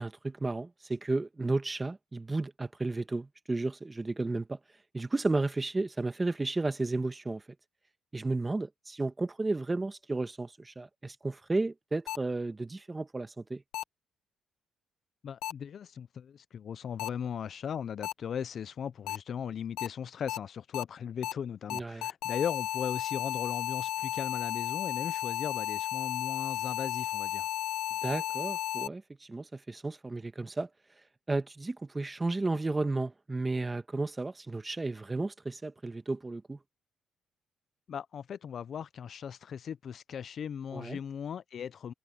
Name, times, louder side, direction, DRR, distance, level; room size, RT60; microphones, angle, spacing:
voice 1, 0.0-4.6 4.9-7.4 8.1-13.6 21.7-22.1 28.0-29.0 29.3-30.7 31.3-36.6 40.7-41.0, right 2 dB, 20° right, 1.5 m, -33 dB
sound 1, 12.1-12.2 13.7-13.8 15.4-15.5 17.0-17.1 18.0-18.1 19.1-19.2 19.8-19.9 20.3-20.4 20.7-20.8 21.2-21.3 21.7-28.9, left 14 dB, 90° left, 0.9 m, -33 dB
voice 2, 15.2-27.5 37.9-41.9, left 8 dB, 55° left, 0.5 m, -38 dB
cardioid pair, 90°, 0 cm